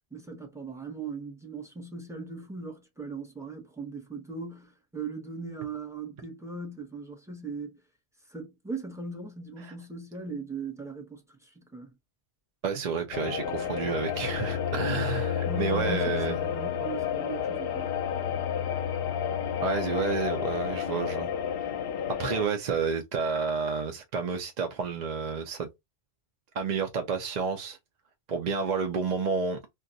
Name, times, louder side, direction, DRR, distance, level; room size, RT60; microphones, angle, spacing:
voice 1, 0.1-7.8 8.3-11.9 15.5-17.9, right 4 dB, 5° right, 0.8 m, -39 dB
voice 2, 12.6-16.4 19.6-21.3 21.6-21.7 22.1-25.7 26.5-27.8 28.3-29.6, right 5 dB, 50° right, 0.6 m, -30 dB
sound 1, 13.1-22.5, left 8 dB, 70° left, 0.7 m, -30 dB
2.4 x 2.3 x 3.9 m
omnidirectional pair, 1.0 m